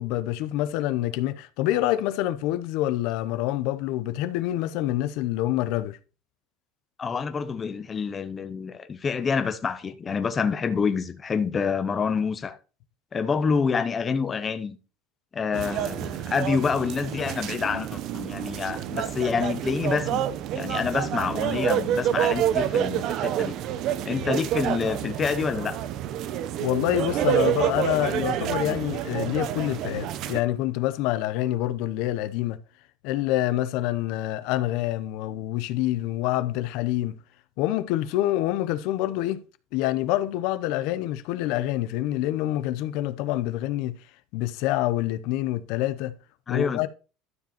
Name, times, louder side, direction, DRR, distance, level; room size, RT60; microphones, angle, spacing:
voice 1, 0.0-6.0 26.6-32.6 33.0-37.2 37.6-39.4 39.7-44.0 44.3-46.1 46.5-46.9, left 14 dB, 60° left, 0.7 m, -26 dB
voice 2, 7.0-12.6 13.1-14.8 15.3-20.2 20.5-23.6 24.0-25.8 46.5-46.9, left 5 dB, 20° left, 0.7 m, -27 dB
sound 1, 15.5-30.4, right 11 dB, 40° right, 0.7 m, -28 dB
12.5 x 5.1 x 4.3 m
cardioid pair, 170°, 0 cm